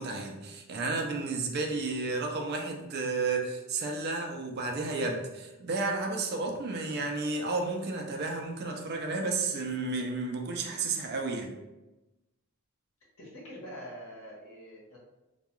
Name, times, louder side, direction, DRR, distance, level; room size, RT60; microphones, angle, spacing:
voice 1, 0.0-11.5, right 3 dB, 45° right, 2 dB, 0.4 m, -32 dB
voice 2, 13.2-15.0, equal, 80° left, -5 dB, 1.0 m, -45 dB
2.2 x 2.2 x 2.9 m, 1.0 s
head